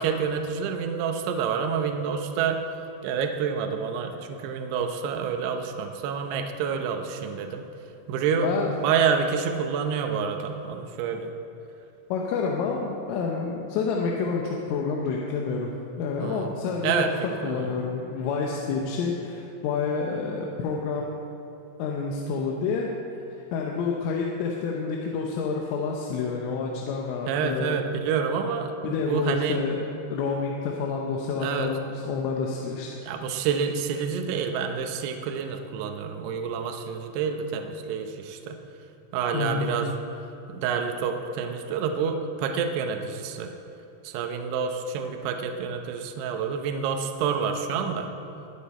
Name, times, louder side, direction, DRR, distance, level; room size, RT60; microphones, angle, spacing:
voice 1, 0.0-2.6 3.0-7.7 8.1-11.3 16.2-16.5 16.8-17.1 17.4-17.7 27.2-29.6 31.4-31.7 33.0-38.6 39.1-39.9 40.5-43.5 44.0-48.1, right 6 dB, 80° right, 4 dB, 2.5 m, -28 dB
voice 2, 8.4-8.7 12.1-15.7 16.0-17.1 17.4-21.1 21.8-22.9 23.5-27.8 28.8-29.8 30.1-32.9 39.3-39.8, left 5 dB, 85° left, -1 dB, 3.5 m, -28 dB
22.5 x 8.4 x 4.3 m, 2.9 s
omnidirectional pair, 5.6 m